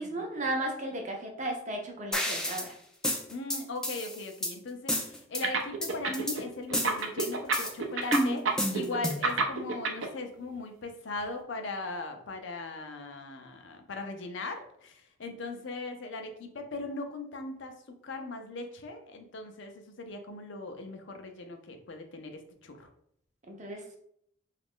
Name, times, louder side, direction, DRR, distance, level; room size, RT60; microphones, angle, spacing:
voice 1, 0.0-2.7 23.5-24.0, right 1 dB, 35° right, 2 dB, 0.6 m, -35 dB
sound 1, 2.1-2.7 3.0-4.5 4.9-5.4 5.8-6.4 6.7-7.7 8.1-9.3, left 1 dB, 5° left, 0.3 m, -30 dB
voice 2, 3.3-17.7 18.0-22.9, left 2 dB, 65° left, 5 dB, 0.5 m, -39 dB
sound 2, 5.4-6.4 6.7-10.1, right 4 dB, 80° right, 0.5 m, -28 dB
3.0 x 2.4 x 3.6 m, 0.70 s
head